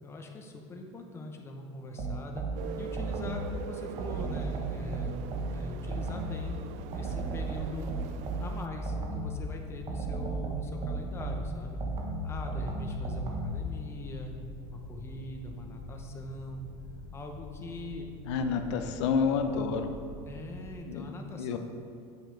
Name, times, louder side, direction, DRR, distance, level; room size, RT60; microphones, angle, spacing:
voice 1, 0.0-2.4 2.8-5.1 5.5-6.6 6.9-7.9 8.4-11.8 12.2-14.3 14.7-16.6 17.1-18.1 20.2-21.6, left 2 dB, 20° left, 2 dB, 0.9 m, -42 dB
sound 1, 2.0-3.5 4.0-6.5 6.9-9.4 9.9-13.6, right 2 dB, 35° right, 1.3 m, -34 dB
Siren ambience Manoa valley, 2.6-8.7, right 10 dB, 55° right, 0.4 m, -43 dB
sound 2, 6.3-20.7, left 1 dB, 65° left, 2.1 m, -46 dB
voice 2, 18.3-19.9 20.8-21.1 21.4-21.6, left 5 dB, 85° left, 6 dB, 0.7 m, -29 dB
8.7 x 6.5 x 4.8 m, 2.5 s
supercardioid pair, 140°, 14 cm